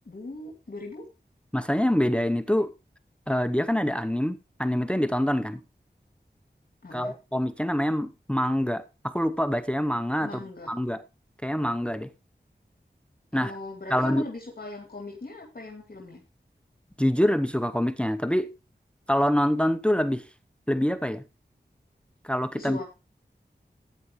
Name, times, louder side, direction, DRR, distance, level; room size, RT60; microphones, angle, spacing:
voice 1, 0.0-1.1 6.8-7.1 10.2-10.7 13.3-16.2 22.5-22.8, left 2 dB, 55° left, 2.6 m, -39 dB
voice 2, 1.5-2.7 3.3-5.6 6.9-10.3 10.7-11.0 11.4-12.1 13.3-13.5 13.9-14.2 17.0-18.5 19.1-20.2 20.7-21.2 22.2-22.8, equal, 5° left, 0.8 m, -25 dB
14.5 x 9.5 x 3.1 m
wide cardioid pair, 55°, 18 cm